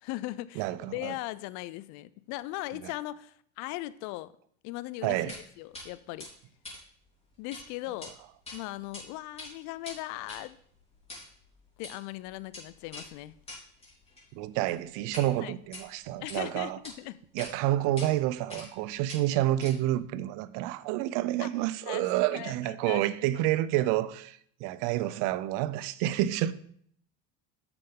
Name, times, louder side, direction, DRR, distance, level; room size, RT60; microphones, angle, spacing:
voice 1, 0.0-4.3 4.6-6.3 7.4-8.1 8.5-10.6 11.8-13.4 15.4-15.5 16.2-17.2 21.4-21.5 21.9-23.0, left 17 dB, 65° left, 0.4 m, -39 dB
voice 2, 0.6-1.1 2.8-2.9 5.0-5.3 14.3-16.8 17.3-26.5, right 14 dB, 75° right, 0.6 m, -29 dB
sound 1, 5.3-5.4 5.7-5.9 6.2-7.6 7.9-8.1 8.4-9.0 9.3-15.3 15.6-16.4 16.8-16.9 17.4-17.5 18.0-18.1 18.5-18.8 19.1-20.0, left 2 dB, 20° left, 3.6 m, -45 dB
6.9 x 6.9 x 3.7 m
supercardioid pair, 120°, 32 cm